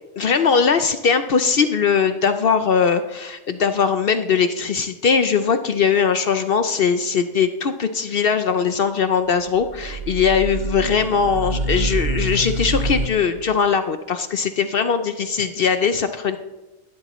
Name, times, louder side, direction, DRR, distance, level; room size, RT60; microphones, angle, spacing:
voice 1, 0.2-16.4, left 6 dB, 55° left, 9 dB, 0.7 m, -20 dB
sound 1, 9.5-13.1, right 2 dB, 40° right, 1.0 m, -26 dB
17.5 x 12.0 x 3.1 m, 1.1 s
omnidirectional pair, 1.4 m